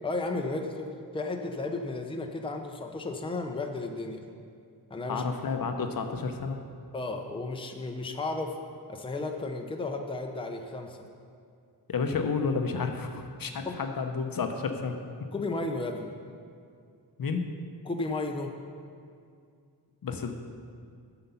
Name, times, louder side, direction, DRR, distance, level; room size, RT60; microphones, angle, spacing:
voice 1, 0.0-0.9 1.1-4.2 4.9-5.2 6.9-8.5 8.9-11.0 13.7-13.8 15.3-16.1 17.9-18.5, left 2 dB, 15° left, 3 dB, 0.6 m, -33 dB
voice 2, 5.1-6.6 11.9-15.0 17.2-17.6 20.0-20.3, left 5 dB, 55° left, 6 dB, 0.7 m, -31 dB
7.8 x 6.9 x 5.6 m, 2.3 s
wide cardioid pair, 95°, 42 cm